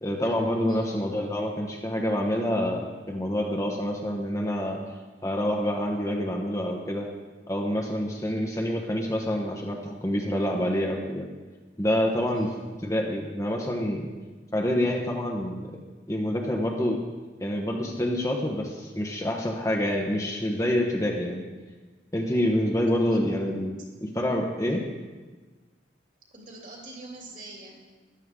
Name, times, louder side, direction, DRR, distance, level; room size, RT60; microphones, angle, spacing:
voice 1, 0.0-4.8 5.2-7.1 7.5-11.3 11.8-12.5 12.8-14.1 14.5-15.7 16.1-17.0 17.4-21.5 22.1-24.9, equal, 15° left, 0 dB, 1.1 m, -27 dB
voice 2, 22.9-23.9 26.3-27.9, right 2 dB, 45° right, -1 dB, 2.8 m, -45 dB
14.0 x 12.0 x 3.7 m, 1.3 s
head